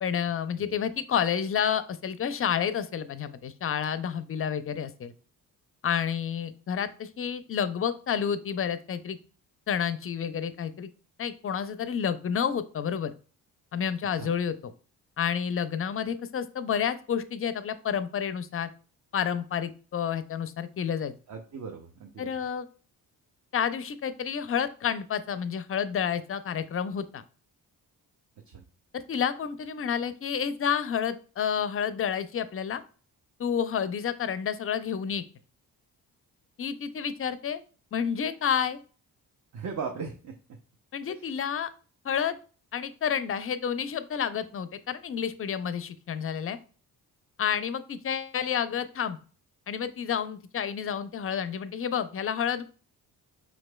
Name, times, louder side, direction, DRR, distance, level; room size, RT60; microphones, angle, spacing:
voice 1, 0.0-5.1 5.8-9.2 9.7-10.9 11.2-13.1 13.7-14.7 15.2-18.7 19.1-21.1 22.2-22.7 23.5-27.2 28.9-32.8 33.4-35.2 36.6-37.6 37.9-38.8 40.9-41.7 42.0-42.4 42.7-46.6 47.4-49.2 49.7-52.6, left 8 dB, 35° left, 12 dB, 0.4 m, -30 dB
voice 2, 21.3-22.3 28.5-28.6 39.5-40.3, right 5 dB, 45° right, 1 dB, 0.7 m, -38 dB
5.0 x 3.0 x 2.2 m, 0.38 s
supercardioid pair, 55°, 42 cm